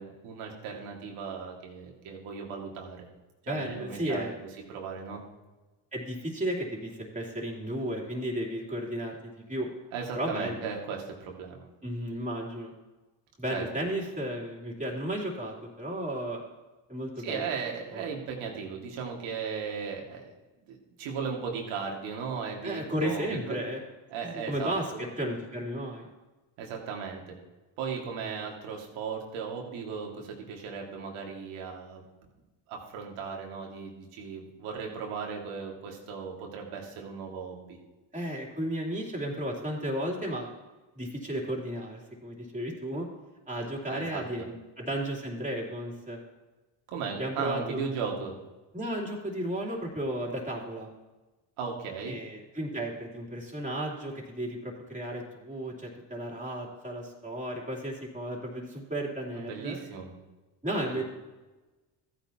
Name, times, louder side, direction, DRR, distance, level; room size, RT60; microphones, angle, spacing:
voice 1, 0.0-3.1 3.4-4.2 4.7-5.2 9.9-11.7 13.5-13.6 17.2-20.3 20.7-23.6 24.1-25.0 26.6-27.4 27.8-32.0 32.7-37.8 43.9-44.2 46.9-48.3 51.6-52.2 59.4-60.1 60.9-61.0, right 6 dB, 85° right, 0 dB, 2.3 m, -37 dB
voice 2, 3.5-4.4 5.9-9.7 10.1-10.7 11.8-12.7 13.4-16.4 16.9-17.5 17.9-18.1 22.6-23.8 24.2-26.1 28.2-28.3 38.1-40.5 40.9-43.1 43.5-46.2 47.2-47.8 48.7-50.9 52.0-59.8 60.6-61.0, right 1 dB, 15° right, -1 dB, 3.3 m, -34 dB
14.5 x 9.3 x 2.9 m, 1.1 s
supercardioid pair, 75°, 48 cm